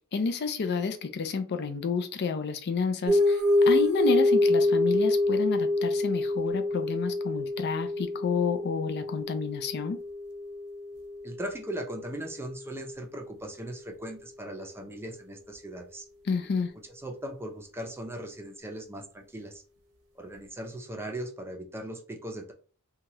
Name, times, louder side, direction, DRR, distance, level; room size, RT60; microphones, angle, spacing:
voice 1, 0.1-10.0 16.2-16.7, left 5 dB, 50° left, 8 dB, 0.4 m, -30 dB
sound 1, 3.1-12.0, left 2 dB, 85° right, 0.8 m, -26 dB
voice 2, 11.2-16.1 17.0-19.6 20.2-22.5, right 1 dB, 10° right, 2 dB, 0.5 m, -39 dB
2.8 x 2.3 x 2.9 m, 0.40 s
head